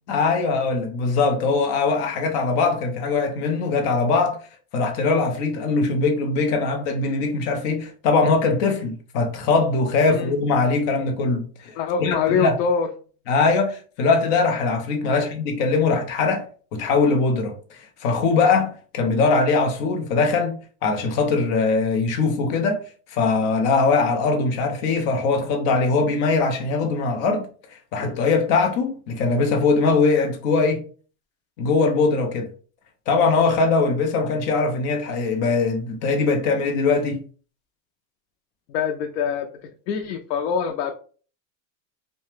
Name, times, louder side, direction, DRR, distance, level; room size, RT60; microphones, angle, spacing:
voice 1, 0.1-4.4 4.7-11.7 12.0-12.6 13.3-16.5 16.7-20.6 20.8-22.8 23.1-27.5 27.9-30.8 31.6-32.5 33.1-37.2, left 4 dB, 35° left, 0.5 m, -21 dB
voice 2, 11.8-12.9 15.1-15.3 38.7-39.5 39.9-40.9, left 6 dB, 80° left, 0.6 m, -24 dB
2.8 x 2.2 x 3.1 m
supercardioid pair, 160°, 49 cm